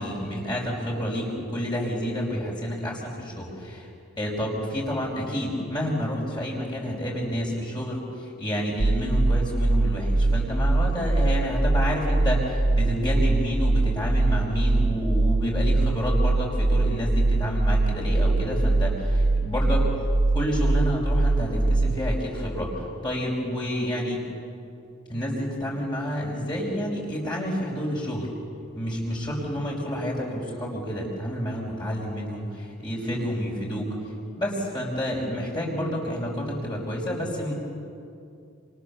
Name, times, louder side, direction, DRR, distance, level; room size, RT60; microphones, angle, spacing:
voice 1, 0.0-3.9 4.2-19.9 20.3-24.2 25.1-28.3 28.7-33.9 34.3-37.5, equal, 20° left, -3 dB, 5.2 m, -29 dB
sound 1, 8.8-22.1, right 2 dB, 80° right, 0.9 m, -22 dB
28.5 x 27.5 x 7.1 m, 2.5 s
head